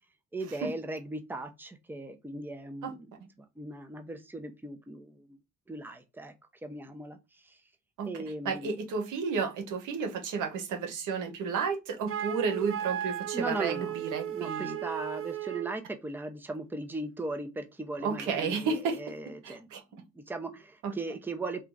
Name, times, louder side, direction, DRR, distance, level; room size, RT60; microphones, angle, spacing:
voice 1, 0.3-3.1 3.6-5.4 5.7-6.3 6.6-7.6 8.1-8.7 13.3-14.0 14.3-19.7 20.0-21.7, right 2 dB, 5° right, 0.7 m, -38 dB
voice 2, 8.4-14.8 18.0-19.0 19.4-19.8 20.8-20.9, right 5 dB, 85° right, 1.1 m, -32 dB
Wind instrument woodwind instrument, 12.1-15.8, right 11 dB, 45° right, 0.5 m, -35 dB
4.3 x 2.4 x 3.8 m
cardioid pair, 90°, 30 cm